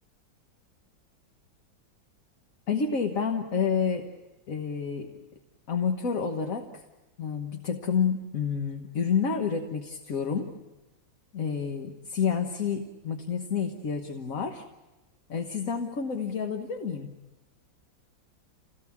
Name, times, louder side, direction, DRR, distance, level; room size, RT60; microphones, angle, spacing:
voice 1, 2.7-4.1 4.5-5.1 5.7-6.8 7.2-10.5 11.3-14.6 15.3-17.1, left 6 dB, 50° left, 4 dB, 1.5 m, -29 dB
28.0 x 18.0 x 8.5 m, 1.1 s
omnidirectional pair, 2.1 m